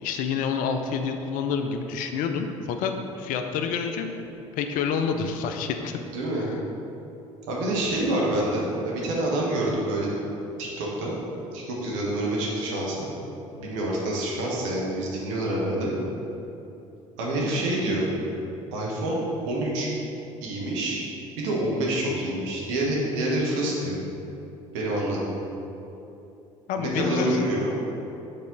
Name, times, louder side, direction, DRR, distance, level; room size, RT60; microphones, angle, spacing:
voice 1, 0.0-4.1 4.5-5.9 6.4-6.5 26.7-27.5, left 6 dB, 55° left, 6 dB, 0.5 m, -28 dB
voice 2, 6.1-6.5 7.5-10.1 10.6-11.1 11.5-13.1 13.5-15.9 17.2-18.1 18.7-19.9 20.4-21.0 21.4-24.0 24.7-25.3 26.8-27.7, right 1 dB, 70° right, -4 dB, 1.3 m, -27 dB
6.7 x 4.1 x 3.9 m, 2.9 s
figure-of-eight pair, 55°, 17 cm